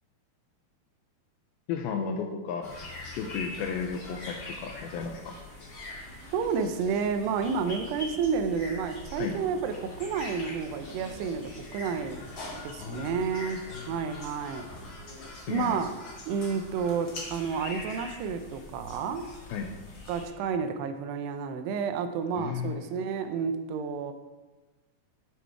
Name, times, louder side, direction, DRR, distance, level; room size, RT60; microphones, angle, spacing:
voice 1, 1.7-2.8 3.2-5.4 9.2-9.4 12.8-13.3 13.7-14.0 15.5-15.8 19.5-19.7 22.4-22.9, left 6 dB, 80° left, 3 dB, 2.3 m, -34 dB
sound 1, 2.6-20.2, left 2 dB, 35° left, 2.2 m, -43 dB
voice 2, 6.3-12.2 12.5-14.7 15.5-16.0 16.3-19.3 20.1-24.1, right 6 dB, 80° right, 8 dB, 2.7 m, -30 dB
9.4 x 7.9 x 4.6 m, 1.2 s
omnidirectional pair, 4.9 m